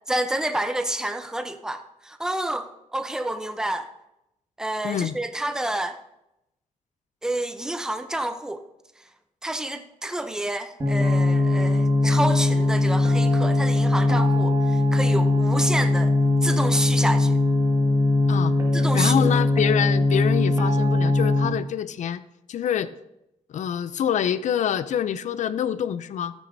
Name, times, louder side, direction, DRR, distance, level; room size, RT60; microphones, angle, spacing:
voice 1, 0.1-3.9 4.6-6.0 7.2-8.6 9.0-9.1 9.4-16.1 16.4-17.4 18.7-19.3, right 1 dB, 5° right, 0.6 m, -29 dB
voice 2, 4.8-5.1 18.3-18.5 18.9-22.2 22.5-22.9 23.5-26.3, left 9 dB, 70° left, 0.5 m, -26 dB
sound 1, 10.8-21.4, left 2 dB, 25° right, 1.8 m, -20 dB
14.0 x 9.2 x 2.7 m
wide cardioid pair, 125°, 13 cm